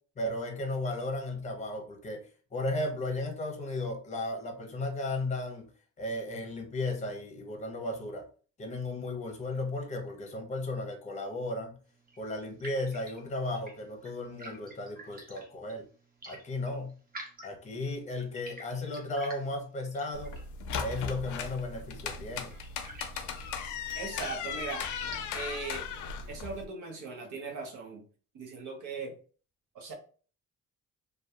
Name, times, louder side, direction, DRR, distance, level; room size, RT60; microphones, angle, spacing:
voice 1, 0.2-2.2 2.5-5.7 6.0-8.3 8.6-11.8 12.2-15.9 16.3-16.9 17.4-20.4 20.8-22.6, left 2 dB, 25° left, 3 dB, 0.7 m, -35 dB
sound 1, 11.8-25.8, right 1 dB, 30° right, 0.9 m, -51 dB
sound 2, 20.1-26.6, left 6 dB, 80° left, 0.5 m, -37 dB
voice 2, 23.9-24.8 25.3-25.9 26.3-28.0 28.3-29.1 29.7-29.9, right 4 dB, 80° right, 2 dB, 0.8 m, -39 dB
2.7 x 2.3 x 2.3 m, 0.40 s
cardioid pair, 90°, 30 cm